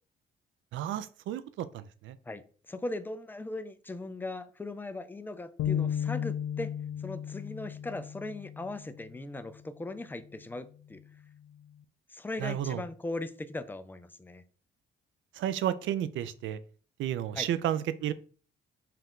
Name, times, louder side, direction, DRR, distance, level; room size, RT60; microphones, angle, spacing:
voice 1, 0.7-2.2 12.4-12.8 15.4-16.6 17.0-18.1, right 11 dB, 75° right, 13 dB, 0.5 m, -32 dB
voice 2, 2.3-6.7 7.0-11.0 12.1-14.4 17.3-17.5, left 2 dB, 10° left, 11 dB, 0.4 m, -39 dB
sound 1, 5.6-9.1, left 9 dB, 80° left, 0.4 m, -34 dB
5.6 x 2.5 x 3.6 m, 0.42 s
cardioid pair, 90°, 20 cm